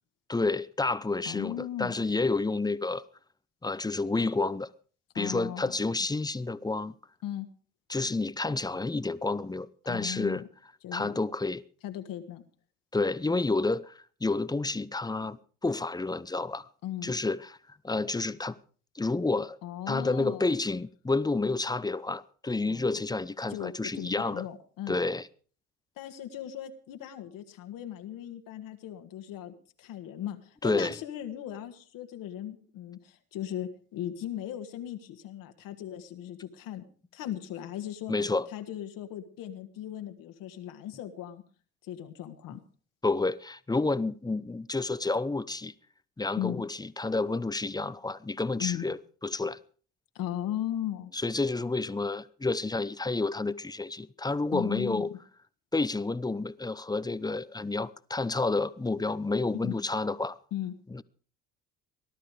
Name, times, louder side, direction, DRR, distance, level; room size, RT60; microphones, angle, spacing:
voice 1, 0.3-3.0 3.6-4.7 5.1-6.9 7.9-10.4 10.9-11.6 12.9-16.7 17.0-17.6 17.8-18.6 18.9-19.6 19.9-24.4 24.9-25.3 30.6-30.9 38.1-38.5 43.0-45.7 46.2-49.0 49.2-49.6 51.1-55.1 55.7-60.4 60.9-61.0, left 3 dB, 10° left, 0.7 m, -30 dB
voice 2, 1.3-2.1 5.2-5.8 7.2-7.5 9.8-10.5 10.8-11.2 11.8-12.4 16.8-17.1 19.6-20.5 22.7-22.9 23.5-25.0 26.0-36.8 37.1-38.1 38.5-41.4 41.8-42.6 46.4-46.6 48.6-48.9 50.2-51.1 54.5-55.2 59.6-59.7 60.5-60.7, left 11 dB, 65° left, 1.9 m, -37 dB
18.5 x 11.5 x 5.0 m
hypercardioid pair, 60°, 35 cm